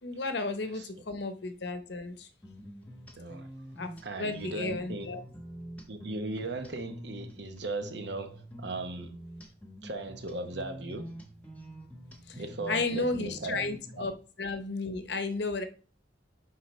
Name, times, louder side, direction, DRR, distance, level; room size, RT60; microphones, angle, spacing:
voice 1, 0.0-2.3 3.8-3.9 4.2-5.2 12.3-14.1 14.4-15.6, left 3 dB, 65° left, 0.8 m, -33 dB
sound 1, 2.4-14.1, equal, 10° left, 1.1 m, -47 dB
voice 2, 3.1-3.5 4.0-5.1 5.9-9.2 9.8-11.1 12.4-13.6 14.0-14.1, right 2 dB, 65° right, 1.0 m, -37 dB
10.0 x 4.0 x 3.2 m
head